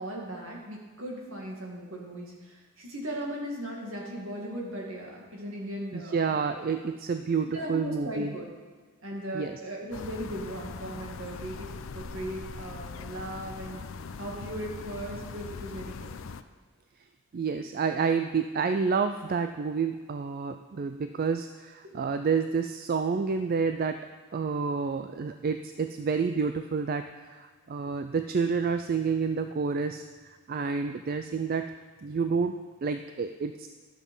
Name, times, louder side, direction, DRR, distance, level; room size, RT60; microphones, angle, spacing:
voice 1, 0.0-6.3 7.5-8.5 9.0-13.8 14.2-16.1 21.8-22.0, right 1 dB, 60° right, -1 dB, 2.2 m, -38 dB
voice 2, 5.9-8.3 9.3-9.6 17.3-24.0 24.3-31.7 32.0-33.7, right 5 dB, 40° right, 8 dB, 0.3 m, -29 dB
sound 1, 9.9-16.4, left 5 dB, 60° left, 0.5 m, -41 dB
12.0 x 7.1 x 5.4 m, 1.4 s
head